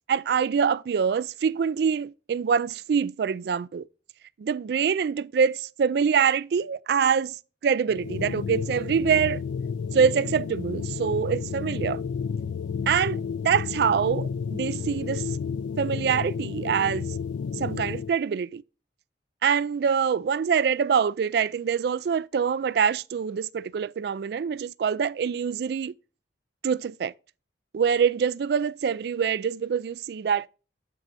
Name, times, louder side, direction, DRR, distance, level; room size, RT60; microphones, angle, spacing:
voice 1, 0.1-3.8 4.4-9.4 9.9-12.0 12.9-15.4 15.8-17.1 17.5-18.6 19.4-25.9 26.6-27.1 27.7-30.5, right 7 dB, 60° right, 0.3 m, -25 dB
sound 1, 7.9-18.1, left 6 dB, 80° left, 0.3 m, -31 dB
12.0 x 4.7 x 2.6 m
head